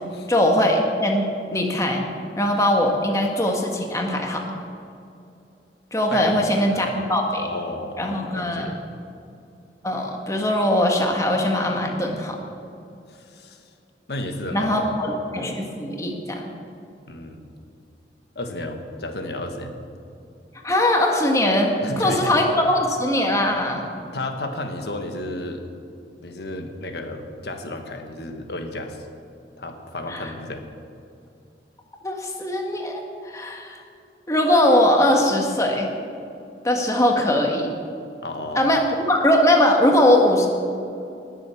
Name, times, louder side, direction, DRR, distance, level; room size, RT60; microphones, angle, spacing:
voice 1, 0.3-1.2 1.5-2.0 2.4-4.4 5.9-7.5 8.0-8.7 9.8-12.4 14.5-16.5 20.6-23.9 30.1-30.3 32.0-33.8 34.3-35.9 36.6-37.7 38.5-40.5, left 1 dB, 20° left, 1 dB, 1.5 m, -21 dB
voice 2, 7.4-8.0 8.3-8.8 13.1-13.6 14.1-14.9 17.1-17.4 18.3-19.7 21.8-22.3 24.1-25.6 26.2-29.1 29.6-30.6 38.2-38.8, left 1 dB, 65° left, 5 dB, 1.4 m, -32 dB
19.5 x 7.8 x 7.0 m, 2.6 s
head